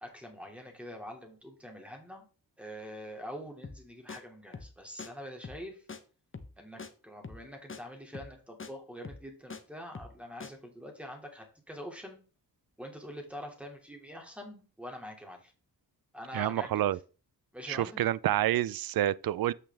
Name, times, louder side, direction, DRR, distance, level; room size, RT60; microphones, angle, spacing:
voice 1, 0.0-2.2 2.6-5.9 6.6-12.2 12.8-15.5 16.1-16.8 17.5-18.0, equal, 5° right, 2.7 m, -45 dB
sound 1, 3.6-4.2 4.5-4.7 5.0-5.1 5.4-5.6 5.9-6.0 6.3-6.5 6.8-6.9 7.2-7.4 7.7-7.8 8.1-8.3 8.6-8.7 9.0-9.6 9.9-10.2 10.4-10.5, left 4 dB, 30° left, 1.1 m, -43 dB
voice 2, 16.3-17.0 17.7-19.5, right 13 dB, 55° right, 0.5 m, -28 dB
8.4 x 5.8 x 3.6 m
cardioid pair, 55°, 43 cm